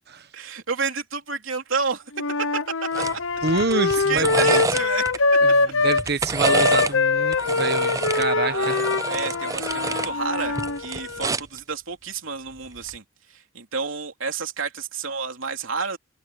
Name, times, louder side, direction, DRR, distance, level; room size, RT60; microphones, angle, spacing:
voice 1, 0.3-2.0 3.0-3.2 4.1-5.1 8.4-16.0, right 5 dB, 65° right, 3.6 m, -30 dB
Wind instrument woodwind instrument, 2.1-6.0 6.4-10.8, left 3 dB, 65° left, 0.8 m, -23 dB
sound 1, 2.9-3.2 3.5-5.2 5.8-7.0 7.3-10.1 10.5-11.6 12.8-13.0, right 3 dB, 15° right, 0.5 m, -28 dB
voice 2, 3.4-4.3 5.4-8.7, right 3 dB, 50° right, 1.3 m, -27 dB
Wind instrument woodwind instrument 2, 7.4-11.3, left 4 dB, 85° left, 5.3 m, -34 dB
head